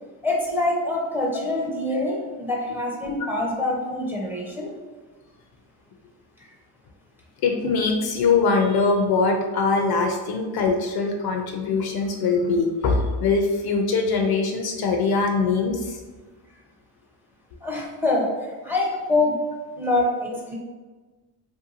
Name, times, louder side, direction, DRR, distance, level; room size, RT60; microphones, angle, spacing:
voice 1, 0.2-4.7 6.4-6.5 17.6-19.4 19.7-20.6, left 2 dB, 5° right, -2 dB, 0.6 m, -25 dB
voice 2, 7.4-16.0, left 4 dB, 55° left, 3 dB, 0.5 m, -22 dB
2.7 x 2.3 x 2.6 m, 1.3 s
supercardioid pair, 70°, 47 cm